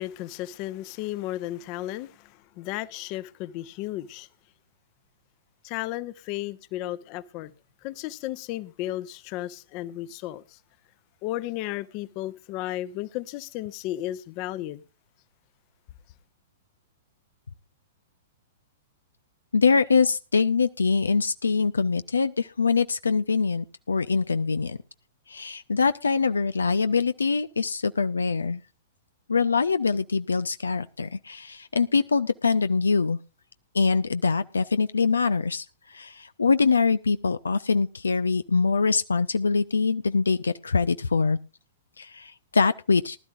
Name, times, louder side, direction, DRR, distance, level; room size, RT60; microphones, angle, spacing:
voice 1, 0.0-4.3 5.6-7.5 7.8-10.6 11.2-14.8, left 15 dB, 40° left, 0.9 m, -34 dB
voice 2, 19.5-24.8 25.3-28.6 29.3-33.2 33.7-41.4 42.0-43.2, left 4 dB, 80° left, 0.5 m, -24 dB
19.5 x 12.5 x 2.5 m
figure-of-eight pair, 105°, 0 cm